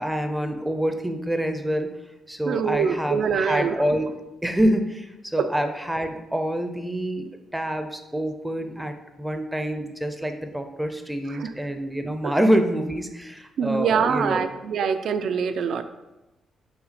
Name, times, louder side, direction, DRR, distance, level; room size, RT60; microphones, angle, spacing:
voice 1, 0.0-1.9 2.3-4.1 4.4-14.5 15.6-15.7, equal, 5° right, 6 dB, 0.5 m, -26 dB
voice 2, 2.5-3.8 5.4-5.5 11.3-11.5 12.2-12.3 13.6-15.8, right 6 dB, 60° right, 10 dB, 0.4 m, -24 dB
5.7 x 4.2 x 4.1 m, 1.0 s
cardioid pair, 165°, 0 cm